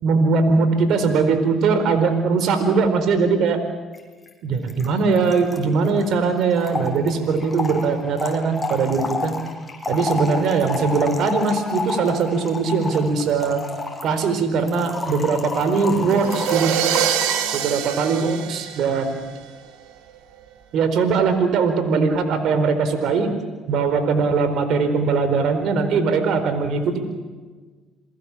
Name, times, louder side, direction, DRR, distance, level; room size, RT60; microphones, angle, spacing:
voice 1, 0.0-3.6 4.4-9.3 9.9-13.6 14.0-16.7 17.5-19.2 20.7-23.3 23.7-27.0, right 4 dB, 70° right, 9 dB, 4.4 m, -20 dB
Trickle dribble / Fill (with liquid), 3.9-4.0 4.3-4.4 4.5-17.6, left 3 dB, 15° left, 6.3 m, -30 dB
sound 1, 16.1-19.4, right 10 dB, 85° right, 2.8 m, -24 dB
29.0 x 22.5 x 7.3 m, 1.4 s
supercardioid pair, 80°, 0 cm